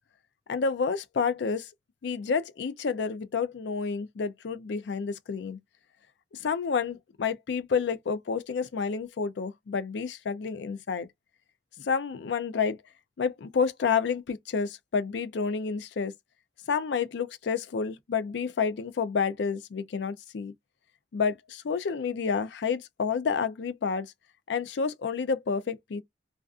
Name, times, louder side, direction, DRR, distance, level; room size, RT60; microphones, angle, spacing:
voice 1, 0.5-1.7 2.0-5.6 6.4-11.1 11.8-12.8 13.2-16.1 16.7-20.5 21.1-24.1 24.5-26.0, left 5 dB, 70° left, 0.4 m, -29 dB
2.4 x 2.4 x 2.3 m
head